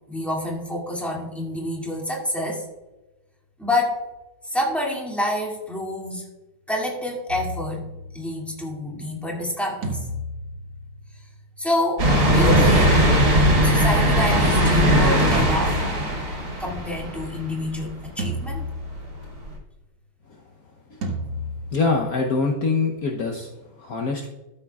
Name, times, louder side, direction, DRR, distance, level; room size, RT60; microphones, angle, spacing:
voice 1, 0.1-2.7 3.6-4.0 4.5-6.2 6.7-7.8 8.1-10.1 11.6-13.2 13.6-15.8 16.6-18.6, left 1 dB, ahead, -3 dB, 2.1 m, -27 dB
sound 1, 7.3-8.6 9.8-11.5 12.5-13.9 15.3-16.7 18.2-19.4 21.0-22.4, equal, 85° right, 2.1 m, -32 dB
sound 2, 12.0-17.6 18.0-18.1 19.5-19.6, equal, 55° right, 2.4 m, -19 dB
voice 2, 21.7-24.3, left 4 dB, 60° left, 1 dB, 1.2 m, -24 dB
13.0 x 7.3 x 2.3 m, 1.1 s
omnidirectional pair, 1.9 m